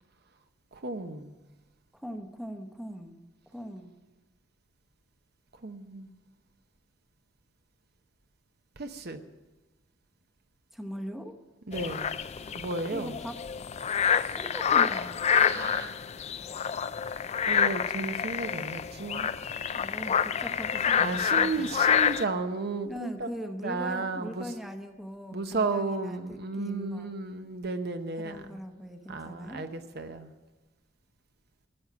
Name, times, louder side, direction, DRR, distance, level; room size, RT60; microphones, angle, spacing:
voice 1, 0.7-1.4 5.6-6.1 8.8-9.2 11.7-12.2 12.5-13.2 15.3-16.0 17.5-19.3 21.0-24.5 25.3-28.6 29.1-30.3, right 3 dB, 55° right, 7 dB, 0.8 m, -34 dB
voice 2, 1.9-3.2 3.5-3.9 10.7-11.3 12.9-13.4 14.4-15.2 19.8-21.7 22.8-27.1 28.2-29.7, equal, ahead, 5 dB, 0.9 m, -40 dB
sound 1, 11.7-22.2, left 7 dB, 35° left, 0.4 m, -27 dB
14.0 x 7.2 x 9.2 m, 1.2 s
head